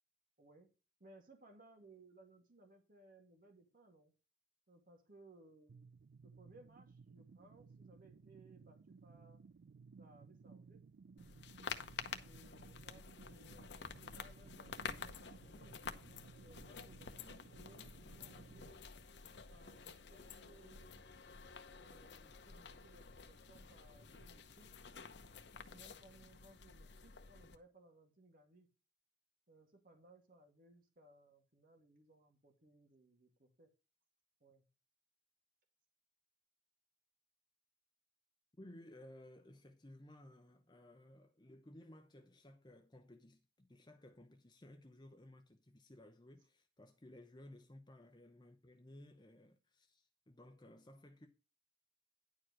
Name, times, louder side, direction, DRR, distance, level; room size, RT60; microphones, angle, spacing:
voice 1, 0.4-0.7 1.0-4.1 4.7-5.9 6.2-9.4 10.0-10.9 12.2-15.8 16.4-18.9 19.5-21.0 21.7-24.7 25.5-28.7 29.5-33.7 34.4-34.7, right 2 dB, 50° right, 2.2 m, -64 dB
sound 1, 5.7-18.7, right 5 dB, 70° right, 0.4 m, -59 dB
sound 2, 11.2-27.6, left 5 dB, 70° left, 0.9 m, -50 dB
voice 2, 38.6-51.3, left 1 dB, 25° left, 0.8 m, -58 dB
10.5 x 4.8 x 6.1 m
head